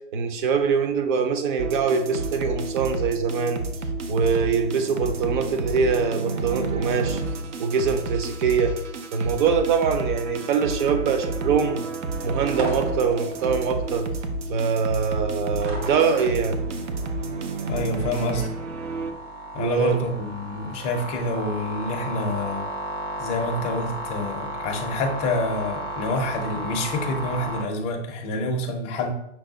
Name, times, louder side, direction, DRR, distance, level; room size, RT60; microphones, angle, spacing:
voice 1, 0.1-3.6 4.1-7.2 7.6-8.7 9.1-11.8 12.2-14.1 14.5-16.6 19.6-20.0, right 6 dB, 45° right, 7 dB, 0.6 m, -23 dB
sound 1, 1.6-19.1, right 3 dB, 90° right, 0.7 m, -30 dB
sound 2, 12.5-27.6, right 1 dB, 60° right, 1.2 m, -35 dB
voice 2, 17.7-18.5 19.5-22.7 23.2-29.1, left 2 dB, 20° left, 2 dB, 0.4 m, -27 dB
5.9 x 2.2 x 3.8 m, 0.77 s
hypercardioid pair, 145°, 35 cm